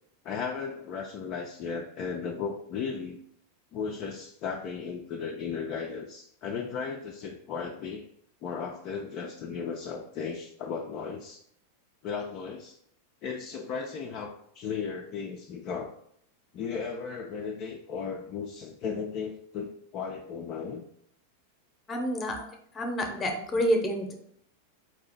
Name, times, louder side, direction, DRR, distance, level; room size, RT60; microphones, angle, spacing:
voice 1, 0.2-3.2 3.7-8.0 8.4-11.4 12.0-12.8 13.2-15.9 16.5-20.8, left 6 dB, 40° left, 1 dB, 0.4 m, -35 dB
voice 2, 21.9-22.5 22.7-24.1, equal, 20° left, 4 dB, 0.8 m, -28 dB
4.7 x 2.8 x 4.0 m, 0.68 s
figure-of-eight pair, 90°, 0 cm